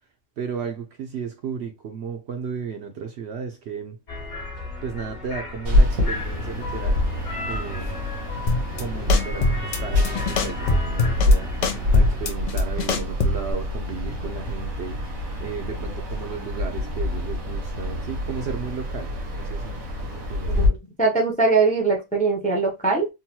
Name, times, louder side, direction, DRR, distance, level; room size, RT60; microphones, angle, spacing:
voice 1, 0.4-4.0 4.8-7.0 7.5-7.9 8.8-11.5 11.9-20.8, right 6 dB, 65° right, 0.7 m, -34 dB
sound 1, 4.1-12.2, left 2 dB, 55° left, 1.4 m, -35 dB
sound 2, 5.6-20.7, left 1 dB, 85° right, 1.6 m, -25 dB
sound 3, 8.5-8.8 9.1-9.8 10.0-11.3 11.6-13.5, left 3 dB, 80° left, 0.4 m, -24 dB
voice 2, 20.6-23.1, right 4 dB, 10° left, 0.4 m, -21 dB
3.8 x 2.2 x 2.8 m
omnidirectional pair, 1.4 m